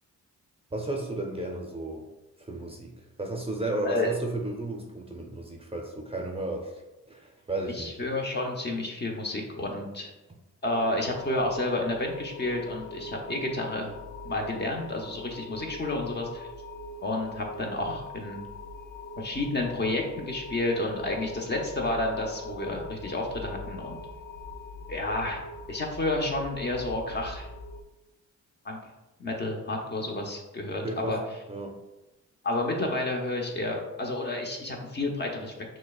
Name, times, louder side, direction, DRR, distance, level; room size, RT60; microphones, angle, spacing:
voice 1, 0.7-2.0 2.4-2.9 3.2-6.7 7.1-8.0 30.8-31.2 31.5-31.8, right 2 dB, 20° right, 0 dB, 0.6 m, -33 dB
voice 2, 7.7-10.1 10.6-13.9 14.2-16.5 17.0-18.4 19.2-24.0 24.9-25.4 25.7-27.5 28.6-28.8 29.2-31.2 32.4-35.5, left 2 dB, 35° left, 1 dB, 0.8 m, -30 dB
sound 1, 10.7-27.8, left 2 dB, 65° left, 0.5 m, -42 dB
6.0 x 2.2 x 2.3 m, 1.0 s
cardioid pair, 70°, 31 cm